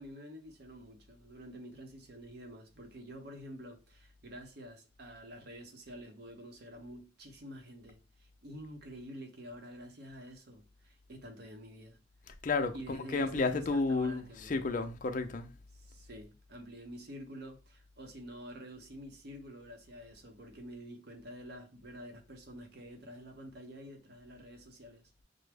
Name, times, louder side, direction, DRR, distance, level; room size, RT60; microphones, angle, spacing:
voice 1, 0.0-12.0 12.7-14.5 15.7-25.2, equal, 55° right, 0.8 m, -48 dB
voice 2, 12.4-15.5, left 3 dB, 45° left, 0.5 m, -32 dB
5.9 x 2.0 x 3.3 m
head